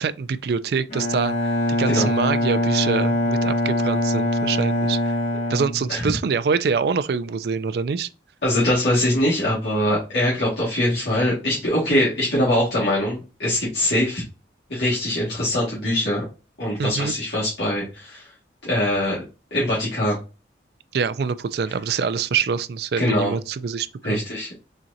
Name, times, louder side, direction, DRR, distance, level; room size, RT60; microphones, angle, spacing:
voice 1, 0.0-1.3 1.7-5.1 5.5-8.1 16.8-17.2 20.9-24.2, right 5 dB, 55° right, 0.3 m, -25 dB
Bowed string instrument, 0.9-6.4, left 1 dB, 35° left, 1.2 m, -23 dB
voice 2, 8.4-14.2 14.7-16.2 16.6-18.3 18.6-19.2 19.5-20.2 23.0-23.3 24.0-24.5, left 1 dB, 65° left, 1.7 m, -22 dB
4.4 x 3.6 x 2.6 m
head